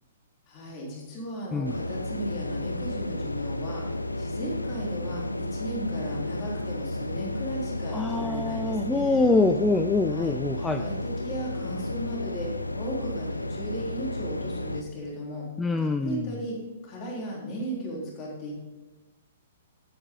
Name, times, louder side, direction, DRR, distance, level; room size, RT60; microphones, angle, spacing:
voice 1, 0.5-3.8 4.2-9.3 10.0-10.4 10.7-15.5 15.8-16.6 16.8-18.6, right 1 dB, 35° left, -4 dB, 3.7 m, -36 dB
sound 1, 1.6-14.8, left 1 dB, 90° left, 0.6 m, -32 dB
voice 2, 7.9-10.8 15.6-16.3, left 3 dB, 10° left, 8 dB, 0.5 m, -25 dB
14.5 x 9.1 x 3.9 m, 1.2 s
figure-of-eight pair, 115°, 0 cm